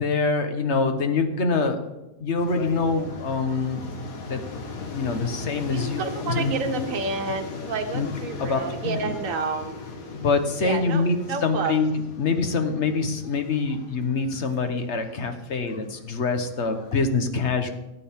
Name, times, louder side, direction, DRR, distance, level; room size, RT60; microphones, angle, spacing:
voice 1, 0.0-1.8 2.2-3.9 4.3-4.4 4.9-6.5 7.9-8.1 8.4-9.1 10.1-11.9 12.2-17.7, left 4 dB, 55° left, 7 dB, 1.3 m, -25 dB
sound 1, 2.4-17.0, left 4 dB, 85° left, 1.8 m, -39 dB
voice 2, 5.7-9.8 10.6-11.8, right 4 dB, 70° right, 5 dB, 1.4 m, -30 dB
17.5 x 8.4 x 3.6 m, 0.99 s
omnidirectional pair, 1.5 m